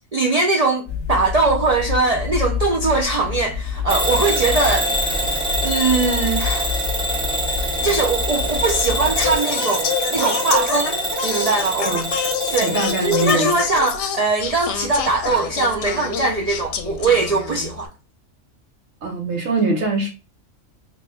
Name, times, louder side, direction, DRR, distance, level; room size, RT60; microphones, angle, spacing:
voice 1, 0.1-4.9 5.3-6.7 7.8-12.0 12.5-12.8 13.0-17.9, right 3 dB, 75° right, 0.3 m, -21 dB
sound 1, 0.9-9.4, left 6 dB, 15° left, 0.9 m, -28 dB
Bell / Alarm, 3.9-13.4, right 1 dB, 5° right, 0.4 m, -25 dB
Singing, 9.1-17.9, left 7 dB, 70° left, 0.8 m, -27 dB
voice 2, 12.6-13.5 19.0-20.1, right 3 dB, 90° right, 1.2 m, -22 dB
3.2 x 2.2 x 3.9 m
omnidirectional pair, 1.3 m